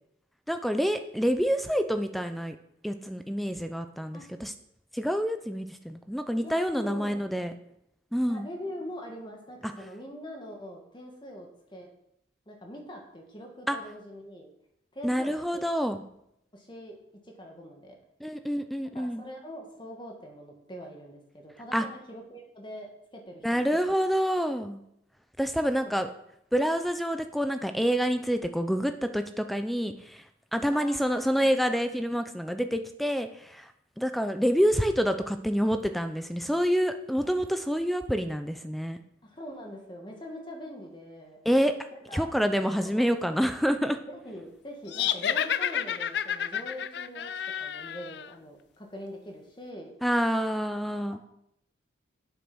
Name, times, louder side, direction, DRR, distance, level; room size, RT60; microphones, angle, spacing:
voice 1, 0.5-2.6 2.8-4.5 4.9-7.5 8.1-8.5 13.7-13.8 15.0-16.0 18.2-19.2 21.7-21.9 23.4-24.8 25.4-26.1 26.5-30.2 30.5-33.7 34.0-39.0 41.5-41.8 42.1-44.0 50.0-51.2, equal, ahead, 9 dB, 0.5 m, -27 dB
voice 2, 6.4-7.3 8.3-11.9 12.5-14.5 14.9-15.6 16.5-17.0 17.2-18.0 18.9-23.7 25.7-26.1 30.6-31.5 39.2-41.4 41.9-42.3 42.8-43.1 44.1-47.3 47.6-49.9, equal, 25° left, 1 dB, 1.8 m, -43 dB
sound 1, 44.9-48.3, left 9 dB, 60° left, 0.4 m, -30 dB
8.5 x 7.6 x 6.2 m, 0.77 s
head